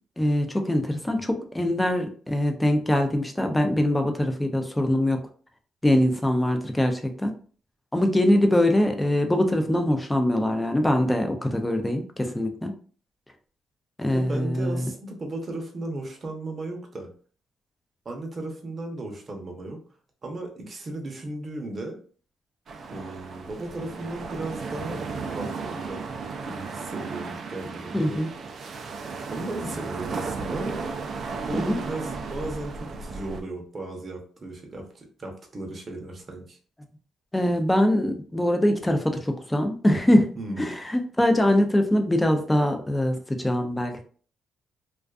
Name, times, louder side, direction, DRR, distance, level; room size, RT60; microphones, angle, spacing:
voice 1, 0.2-5.2 5.8-7.3 7.9-12.7 14.0-14.9 27.9-28.3 31.6-31.8 37.3-40.3 40.6-44.0, left 1 dB, 10° left, 5 dB, 0.5 m, -23 dB
voice 2, 14.1-17.1 18.0-19.8 20.2-22.0 22.9-25.1 25.3-26.0 26.4-28.2 29.3-30.8 31.4-36.6 40.4-40.7, right 2 dB, 40° right, 2 dB, 0.7 m, -35 dB
sound 1, 22.7-33.4, right 4 dB, 55° right, 0.4 m, -35 dB
2.4 x 2.3 x 2.3 m, 0.43 s
cardioid pair, 90°, 0 cm